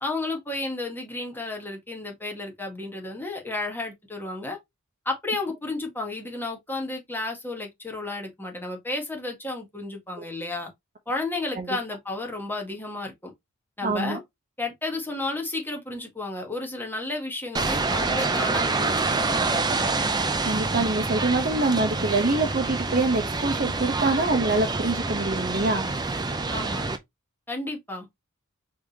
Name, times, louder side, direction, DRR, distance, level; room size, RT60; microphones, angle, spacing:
voice 1, 0.0-4.6 5.1-10.7 11.1-13.3 13.8-14.2 14.6-19.4 26.5-26.9 27.5-28.1, left 2 dB, 10° left, 1.6 m, -32 dB
voice 2, 13.8-14.2 20.4-25.9, right 2 dB, 40° right, 0.9 m, -25 dB
sound 1, 17.5-27.0, right 3 dB, 20° right, 0.5 m, -27 dB
4.9 x 3.5 x 2.9 m
head